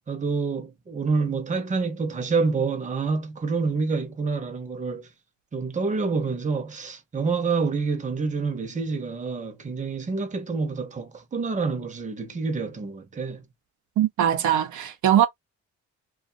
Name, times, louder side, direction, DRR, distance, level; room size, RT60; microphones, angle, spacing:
voice 1, 0.1-5.1 5.5-13.4, right 4 dB, 25° right, 0.8 m, -27 dB
voice 2, 14.0-15.3, right 10 dB, 75° right, 0.7 m, -21 dB
2.5 x 2.4 x 2.6 m
cardioid pair, 90°, 30 cm